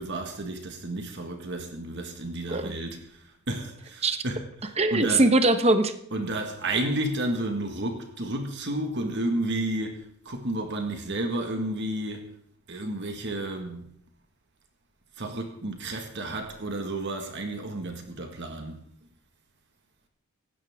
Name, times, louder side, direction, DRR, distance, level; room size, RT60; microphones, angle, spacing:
voice 1, 0.0-5.2 6.1-12.3 12.7-13.9 15.2-18.8, right 1 dB, 55° right, 1.7 m, -32 dB
voice 2, 4.8-5.9, right 2 dB, 30° right, 1.1 m, -21 dB
18.5 x 15.5 x 3.6 m
head